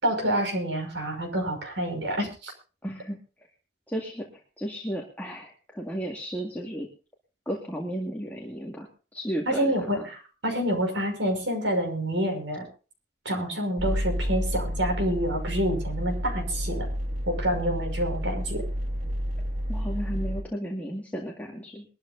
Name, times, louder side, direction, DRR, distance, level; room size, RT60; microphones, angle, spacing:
voice 1, 0.0-2.5 9.5-12.7 13.2-16.9 17.3-18.6, equal, 85° right, 3 dB, 5.7 m, -28 dB
voice 2, 2.8-3.2 3.9-4.3 4.6-6.9 7.5-10.1 19.7-21.9, equal, 10° left, 0 dB, 2.0 m, -34 dB
sound 1, 13.8-20.4, equal, 40° right, 1.7 m, -30 dB
22.5 x 13.0 x 2.7 m, 0.35 s
head